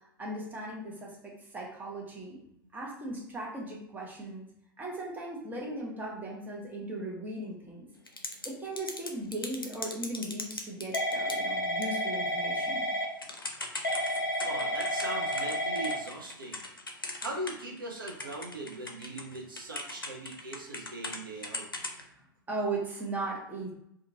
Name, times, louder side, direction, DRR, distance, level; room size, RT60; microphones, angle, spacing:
voice 1, 0.0-2.4 2.7-4.5 4.8-7.9 8.4-12.8 22.5-23.7, right 2 dB, 15° right, -3 dB, 0.9 m, -37 dB
Typing / Telephone, 8.1-8.5 8.8-17.8 18.1-21.2 21.4-22.0, left 1 dB, 85° left, 0.5 m, -32 dB
voice 2, 14.4-16.6 17.2-21.7, right 2 dB, 75° right, -1 dB, 0.6 m, -40 dB
2.8 x 2.3 x 2.7 m, 0.75 s
figure-of-eight pair, 90°, 11 cm